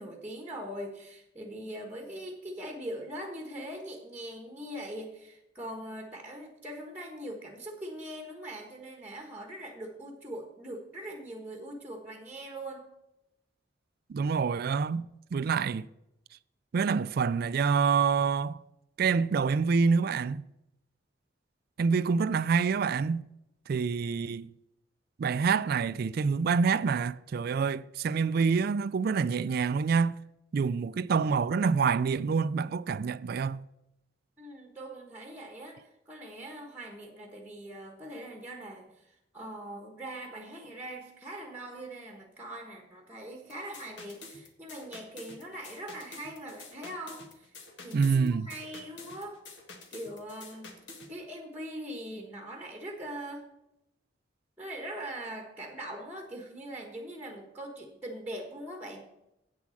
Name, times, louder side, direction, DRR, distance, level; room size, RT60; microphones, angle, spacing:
voice 1, 0.0-12.9 34.4-47.5 47.8-49.4 49.9-50.7 51.1-53.5 54.6-59.1, right 1 dB, 10° right, 1.3 m, -42 dB
voice 2, 14.1-15.0 15.3-15.9 16.7-18.6 19.0-20.4 21.8-23.2 23.7-24.5 25.2-30.1 30.5-33.7 47.9-48.5, right 5 dB, 55° right, 0.3 m, -27 dB
sound 1, 43.5-51.1, left 3 dB, 70° left, 1.7 m, -48 dB
8.6 x 7.1 x 6.3 m
head